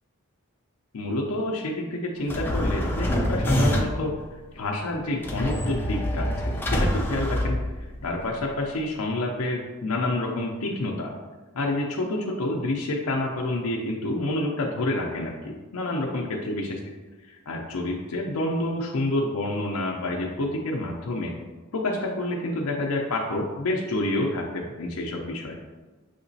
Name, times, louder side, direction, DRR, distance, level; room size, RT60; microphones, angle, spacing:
voice 1, 0.9-4.2 4.5-7.6 8.0-11.1 11.5-16.8 17.2-21.3 21.7-25.6, left 2 dB, 85° left, -1 dB, 0.5 m, -28 dB
sound 1, 2.3-4.1 5.2-8.1, equal, 10° left, 0.5 m, -25 dB
6.4 x 2.9 x 2.7 m, 1.2 s
head